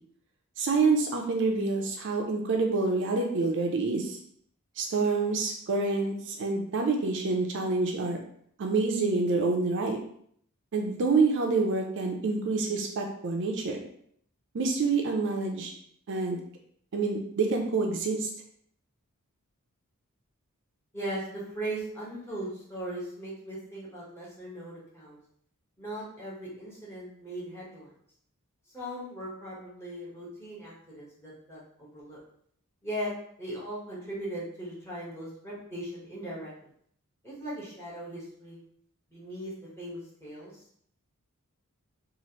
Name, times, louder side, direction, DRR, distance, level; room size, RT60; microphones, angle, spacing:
voice 1, 0.6-4.2 4.8-8.2 8.6-10.0 10.7-13.8 14.5-15.7 16.1-16.4 16.9-18.3, right 3 dB, 55° right, 2 dB, 0.4 m, -27 dB
voice 2, 20.9-25.2 25.8-27.9 28.7-32.2 32.8-33.1 33.4-36.5 37.2-38.6 39.1-40.6, right 1 dB, 10° left, -7 dB, 1.0 m, -38 dB
3.0 x 2.4 x 2.8 m, 0.66 s
head